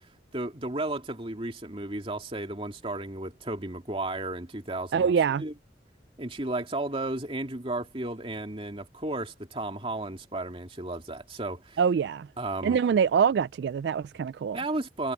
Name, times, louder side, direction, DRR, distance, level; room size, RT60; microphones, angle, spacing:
voice 1, 0.3-5.1 5.4-5.5 6.2-11.8 12.4-12.8 14.5-15.1, right 2 dB, 30° right, 2.5 m, -33 dB
voice 2, 4.9-5.4 11.8-12.3 12.6-14.6, right 7 dB, 75° right, 0.3 m, -24 dB
head